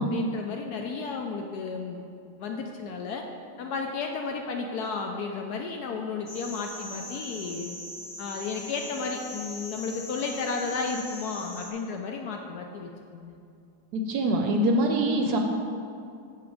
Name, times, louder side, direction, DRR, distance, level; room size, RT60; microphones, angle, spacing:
voice 1, 0.1-2.0 2.4-3.2 3.6-7.8 8.2-13.3, left 4 dB, 70° left, 2 dB, 1.0 m, -33 dB
sound 1, 6.3-11.7, left 2 dB, 40° left, 1.0 m, -41 dB
voice 2, 13.9-15.4, right 1 dB, 70° right, 3 dB, 1.0 m, -24 dB
7.1 x 5.6 x 4.6 m, 2.5 s
omnidirectional pair, 2.0 m